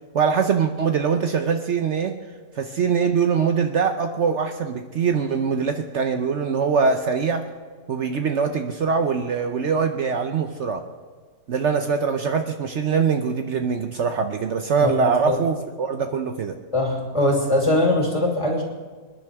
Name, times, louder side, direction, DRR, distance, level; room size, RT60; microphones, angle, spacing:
voice 1, 0.1-2.2 2.6-7.5 7.9-10.8 11.5-16.6, right 6 dB, 60° right, 5 dB, 1.0 m, -23 dB
voice 2, 16.7-18.6, left 1 dB, 20° left, -1 dB, 2.9 m, -21 dB
26.0 x 10.5 x 3.5 m, 1.5 s
omnidirectional pair, 1.4 m